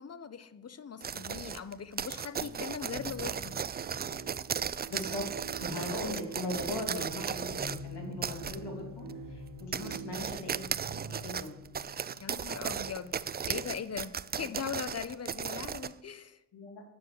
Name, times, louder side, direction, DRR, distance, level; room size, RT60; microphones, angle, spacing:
voice 1, 0.0-3.6 9.8-9.9 12.2-13.2 13.5-16.4, left 7 dB, 35° left, 13 dB, 0.8 m, -40 dB
sound 1, 1.0-7.8 8.2-8.6 9.1-9.2 9.6-15.9, right 7 dB, 25° right, 0.3 m, -36 dB
sound 2, 2.4-11.3, right 5 dB, 65° right, 1.4 m, -46 dB
voice 2, 4.9-5.3 5.5-7.6 7.8-10.7 11.0-11.5 14.4-14.5 16.5-16.8, left 2 dB, 80° left, 1 dB, 2.8 m, -39 dB
Bass guitar, 7.6-13.8, left 9 dB, 60° left, 3.4 m, -49 dB
9.3 x 7.0 x 6.6 m, 0.88 s
supercardioid pair, 55°, 41 cm